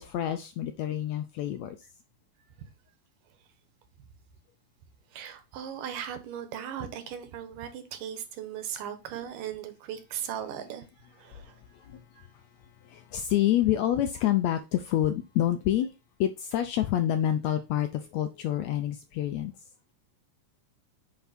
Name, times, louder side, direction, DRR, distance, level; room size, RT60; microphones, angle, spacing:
voice 1, 0.0-1.8 11.9-12.0 12.9-15.9 16.2-19.5, left 12 dB, 80° left, 1.6 m, -27 dB
voice 2, 5.1-11.6 12.2-12.3, right 9 dB, 85° right, 2.8 m, -38 dB
9.5 x 4.5 x 4.1 m
omnidirectional pair, 3.7 m